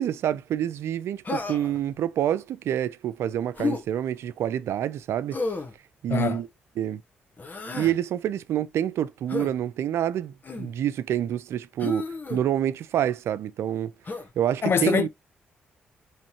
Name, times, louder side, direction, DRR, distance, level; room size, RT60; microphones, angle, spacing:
voice 1, 0.0-5.4 6.0-6.5 6.8-7.0 7.7-13.9 14.4-15.1, right 10 dB, 75° right, 0.4 m, -27 dB
Human voice, 1.3-1.8 3.6-3.8 5.3-5.7 7.4-8.0 9.3-9.5 10.4-10.7 11.8-12.4 14.1-14.3, left 3 dB, 40° left, 1.3 m, -31 dB
voice 2, 6.1-6.4 14.6-15.1, left 6 dB, 55° left, 0.7 m, -23 dB
4.2 x 3.1 x 2.9 m
supercardioid pair, 55°, 5 cm